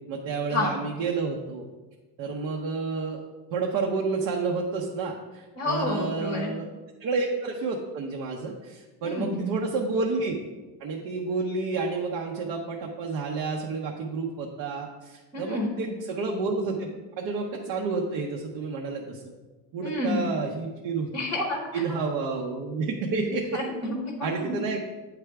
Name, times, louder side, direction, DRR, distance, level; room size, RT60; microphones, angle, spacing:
voice 1, 0.1-1.7 2.2-3.2 3.5-6.7 7.0-10.4 10.8-19.2 19.7-21.1 21.7-23.6 24.2-24.9, right 4 dB, 55° right, 0 dB, 0.8 m, -30 dB
voice 2, 5.6-6.5 9.0-9.5 15.3-15.7 19.8-20.3 21.1-21.8 23.5-24.6, left 2 dB, 10° left, -1 dB, 0.8 m, -29 dB
9.0 x 3.4 x 4.7 m, 1.2 s
cardioid pair, 165°, 46 cm